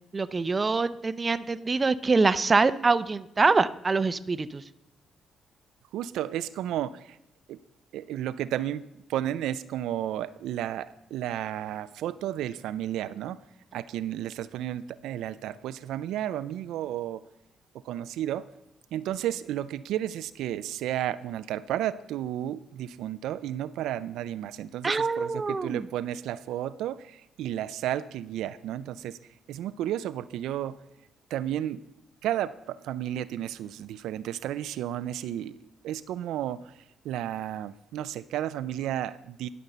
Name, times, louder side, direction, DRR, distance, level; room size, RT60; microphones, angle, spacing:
voice 1, 0.1-4.6 24.8-25.8, right 4 dB, 30° right, 14 dB, 0.5 m, -24 dB
voice 2, 5.9-7.2 7.5-7.6 7.9-8.8 9.1-13.4 13.7-17.2 17.8-18.5 18.9-29.2 29.5-30.8 31.3-31.8 32.2-35.6 35.8-36.6 37.0-39.5, right 12 dB, 85° right, 14 dB, 0.3 m, -32 dB
11.5 x 5.3 x 6.7 m, 0.82 s
cardioid pair, 90°, 0 cm